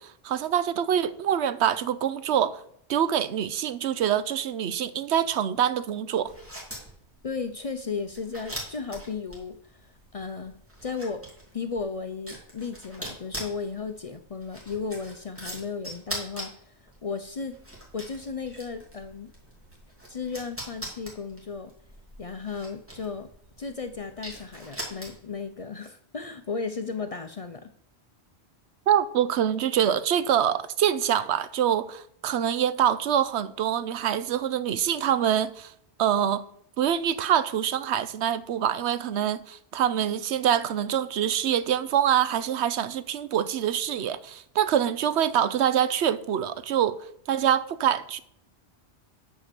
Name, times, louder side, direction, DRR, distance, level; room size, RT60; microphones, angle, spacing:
voice 1, 0.0-2.6 2.9-6.3 28.9-35.7 36.0-36.4 36.8-47.0 47.3-48.2, right 9 dB, 80° right, 0.9 m, -25 dB
sound 1, 6.2-25.4, equal, 10° right, 2.5 m, -42 dB
voice 2, 7.2-10.6 10.8-11.2 11.5-16.7 17.0-17.6 17.9-19.3 20.1-21.7 22.2-23.3 23.6-27.7, left 5 dB, 45° left, 0.5 m, -35 dB
9.1 x 4.6 x 6.7 m
omnidirectional pair, 1.1 m